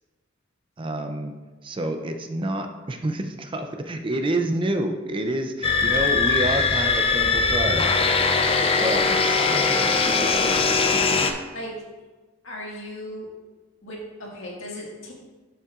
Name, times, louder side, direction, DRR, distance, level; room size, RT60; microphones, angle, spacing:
voice 1, 0.8-1.3 1.6-8.0 8.8-10.2, right 1 dB, 25° right, 6 dB, 0.4 m, -28 dB
sound 1, 5.6-11.3, left 4 dB, 30° left, 0.5 m, -21 dB
voice 2, 12.4-13.3 13.8-15.1, equal, 70° left, -3 dB, 1.9 m, -36 dB
11.5 x 5.5 x 2.4 m, 1.3 s
head